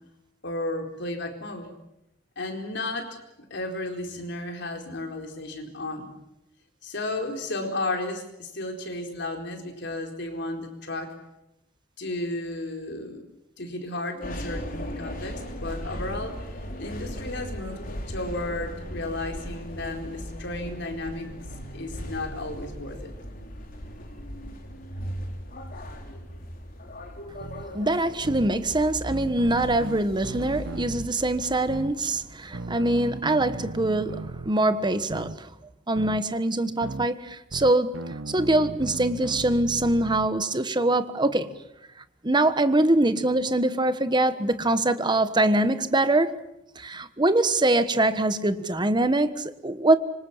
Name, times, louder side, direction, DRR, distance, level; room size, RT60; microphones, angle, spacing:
voice 1, 0.4-1.7 2.4-3.2 3.5-6.1 6.8-11.2 12.0-13.2 13.6-16.4 16.8-21.3 21.7-23.1, left 2 dB, 65° left, 4.5 m, -33 dB
sound 1, 14.2-32.3, equal, 50° left, 4.3 m, -38 dB
sound 2, 27.4-27.6 28.2-28.5 29.1-31.1 31.7-31.9 32.5-34.5 35.1-35.4 36.0-36.2 36.8-37.1 37.5-40.3, right 2 dB, 80° right, 0.9 m, -36 dB
voice 2, 27.7-35.5 35.9-41.5 42.2-46.5 46.8-50.0, right 2 dB, 25° right, 1.3 m, -23 dB
26.5 x 24.5 x 7.4 m
head